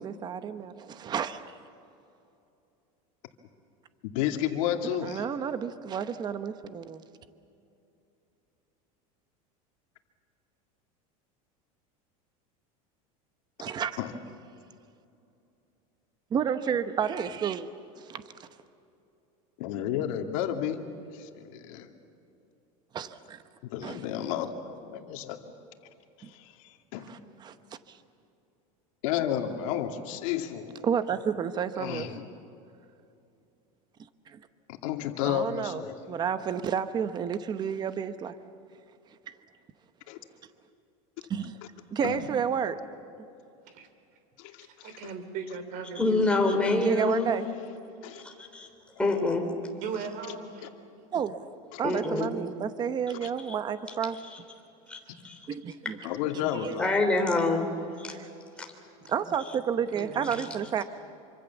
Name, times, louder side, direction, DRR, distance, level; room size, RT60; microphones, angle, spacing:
voice 1, 0.0-1.4 4.8-7.0 13.6-14.0 16.3-17.7 18.0-18.5 22.9-23.4 23.8-24.0 26.2-26.3 27.1-27.5 27.9-28.0 30.8-32.1 34.3-34.4 35.2-38.4 41.3-41.6 41.9-42.8 46.7-47.5 51.1-51.4 51.8-54.2 55.5-56.0 56.5-56.8 58.1-58.3 59.1-60.8, right 7 dB, 25° right, 11 dB, 0.9 m, -31 dB
voice 2, 4.0-5.2 14.0-14.1 19.6-20.8 21.1-21.9 23.7-25.4 26.2-27.1 29.0-30.8 31.8-32.3 34.7-35.9 40.1-40.2 42.0-42.3 44.4-45.0 47.4-47.7 48.0-48.2 51.7-51.8 53.1-53.3 56.0-56.9, left 10 dB, 70° left, 5 dB, 2.5 m, -32 dB
voice 3, 44.6-46.2 48.0-48.4 49.7-51.0 55.1-55.2 59.9-60.5, right 6 dB, 50° right, 9 dB, 3.3 m, -39 dB
voice 4, 46.0-47.3 48.1-48.7 49.0-49.5 51.8-52.3 54.2-54.4 54.9-55.0 55.2-55.4 55.9-56.0 56.8-57.7 58.0-58.2 58.6-58.7 60.2-60.4, left 2 dB, 5° left, 2 dB, 3.4 m, -26 dB
27.0 x 25.0 x 7.2 m, 2.7 s
supercardioid pair, 155°, 18 cm